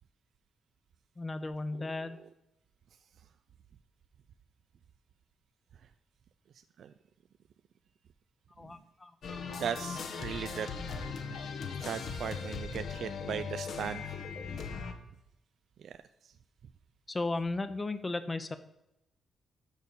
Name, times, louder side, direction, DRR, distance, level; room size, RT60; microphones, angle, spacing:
voice 1, 1.2-2.2 8.6-9.4 17.1-18.6, left 2 dB, 25° left, 11 dB, 0.7 m, -35 dB
sound 1, 9.2-14.9, left 5 dB, 70° left, 1.1 m, -39 dB
voice 2, 9.6-10.7 11.8-14.0 15.8-15.9, right 8 dB, 70° right, 11 dB, 0.3 m, -37 dB
6.5 x 5.4 x 6.6 m, 0.84 s
cardioid pair, 75°, 0 cm